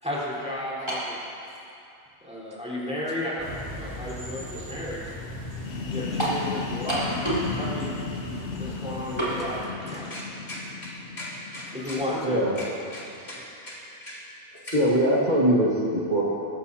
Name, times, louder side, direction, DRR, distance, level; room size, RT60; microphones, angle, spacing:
voice 1, 0.0-1.2 2.2-5.1 5.9-7.2 7.5-7.9 8.6-10.1 11.7-12.4, left 1 dB, 5° right, -8 dB, 4.0 m, -33 dB
sound 1, 0.9-1.2 2.1-2.2 6.2-6.4 6.9-7.5 7.8-7.9 9.2-9.4, right 1 dB, 25° right, 4.0 m, -28 dB
sound 2, 3.4-9.6, left 1 dB, 15° left, 3.4 m, -39 dB
sound 3, 5.5-13.1, left 4 dB, 90° left, 1.2 m, -35 dB
voice 2, 10.1-10.9 11.2-12.0 12.6-13.8 14.0-14.2 14.6-14.8, left 1 dB, 65° left, -7 dB, 4.6 m, -39 dB
voice 3, 12.2-12.5 14.7-16.2, right 1 dB, 40° right, -5 dB, 2.0 m, -22 dB
24.0 x 13.5 x 2.8 m, 2.6 s
omnidirectional pair, 1.2 m